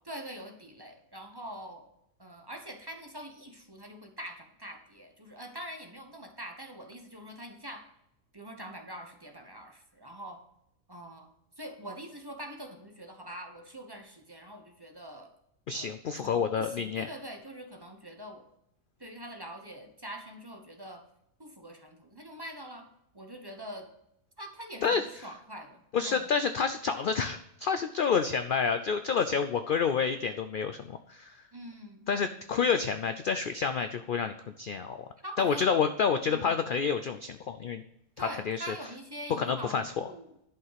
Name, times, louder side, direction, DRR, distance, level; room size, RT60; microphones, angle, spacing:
voice 1, 0.0-1.9 2.2-7.9 8.3-10.4 10.9-15.3 15.7-18.4 19.0-21.0 21.4-22.9 23.1-23.9 24.4-26.3 31.5-32.1 35.2-35.7 36.3-36.6 38.2-40.3, equal, 20° right, 3 dB, 1.0 m, -44 dB
voice 2, 15.7-17.1 24.8-25.0 25.9-31.3 32.1-35.0 35.4-37.8 38.2-38.7 39.4-40.0, left 6 dB, 65° left, 9 dB, 0.5 m, -29 dB
11.0 x 5.6 x 5.7 m, 0.78 s
omnidirectional pair, 1.5 m